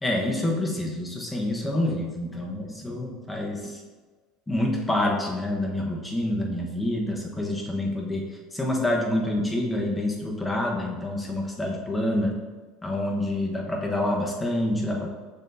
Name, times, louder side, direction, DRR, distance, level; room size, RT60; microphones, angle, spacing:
voice 1, 0.0-3.8 4.5-8.3 8.5-12.3 12.8-15.2, left 1 dB, 10° left, 0 dB, 1.1 m, -27 dB
6.8 x 6.1 x 2.6 m, 1.4 s
supercardioid pair, 130°, 0 cm